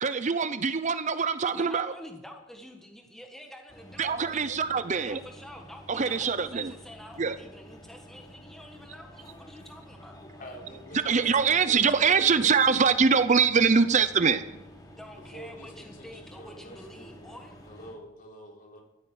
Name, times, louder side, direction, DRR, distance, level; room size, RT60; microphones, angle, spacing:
voice 1, 0.0-1.9 4.0-5.2 5.9-6.7 7.2-7.4 10.9-14.4, right 5 dB, 40° right, 12 dB, 0.6 m, -23 dB
voice 2, 1.5-4.5 5.0-10.2 14.9-17.5, left 1 dB, ahead, 2 dB, 1.5 m, -47 dB
sound 1, 3.7-17.9, equal, 20° left, 3.1 m, -50 dB
voice 3, 10.4-12.6 13.6-13.8 15.1-18.8, equal, 45° left, 0 dB, 3.8 m, -48 dB
14.5 x 9.0 x 9.6 m, 0.98 s
head